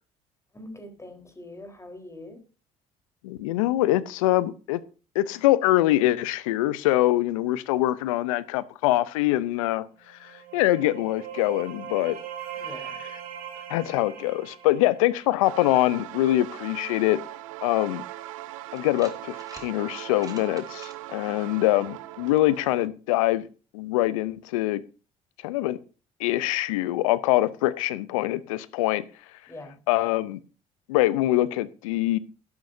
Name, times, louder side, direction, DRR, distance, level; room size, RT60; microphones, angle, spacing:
voice 1, 0.5-2.4 12.6-13.0 29.5-29.8, left 1 dB, 15° left, 4 dB, 4.1 m, -43 dB
voice 2, 3.2-4.8 5.1-12.2 13.7-17.2 17.6-18.0 18.7-23.4 23.7-24.8 25.4-25.8 26.2-29.0 29.9-30.4 30.9-32.2, left 16 dB, 85° left, 18 dB, 0.7 m, -24 dB
sound 1, 10.1-15.8, right 9 dB, 60° right, 2.8 m, -40 dB
sound 2, 15.4-22.9, right 16 dB, 85° right, 0.7 m, -40 dB
sound 3, 18.8-19.7 20.0-21.0, right 3 dB, 20° right, 2.4 m, -46 dB
13.0 x 12.0 x 2.7 m, 0.35 s
hypercardioid pair, 55°, 17 cm